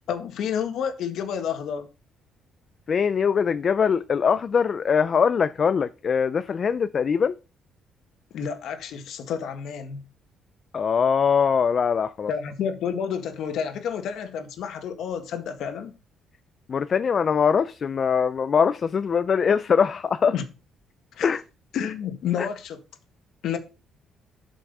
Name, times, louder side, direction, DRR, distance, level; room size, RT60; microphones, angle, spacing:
voice 1, 0.1-1.9 8.3-10.0 12.3-15.9 20.3-20.4 21.1-21.3 21.7-22.8 23.4-23.6, left 8 dB, 70° left, 1.8 m, -30 dB
voice 2, 2.9-7.3 10.7-12.3 16.7-20.3 21.2-21.4 22.4-22.5, left 6 dB, 40° left, 0.4 m, -22 dB
8.3 x 6.1 x 5.4 m
cardioid pair, 125°, 0 cm